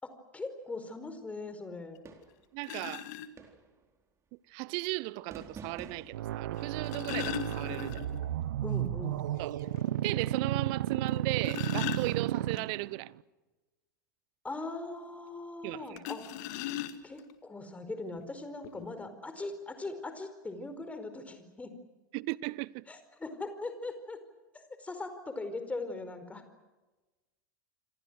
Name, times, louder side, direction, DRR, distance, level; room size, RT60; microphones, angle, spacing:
voice 1, 0.0-2.0 8.6-9.2 14.4-16.2 17.0-21.7 22.9-24.2 24.5-26.4, left 3 dB, 15° left, 4.8 m, -40 dB
sound 1, 1.9-2.0 2.6-3.3 4.7-4.8 6.6-8.3 8.6-8.7 9.1-9.2 9.8-9.9 11.1-12.6 16.0-17.3 18.2-18.3 18.6-18.9, left 13 dB, 60° left, 1.9 m, -38 dB
sound 2, 2.1-2.5 3.4-3.9 5.3-6.4, right 5 dB, 25° right, 4.1 m, -48 dB
voice 2, 2.5-3.1 4.5-8.0 9.4-9.6 10.0-13.1 15.6-16.0 22.1-22.9, right 23 dB, 50° right, 0.7 m, -36 dB
sound 3, 6.1-13.1, right 12 dB, 70° right, 1.2 m, -33 dB
27.0 x 26.5 x 6.5 m
hypercardioid pair, 90°, 11 cm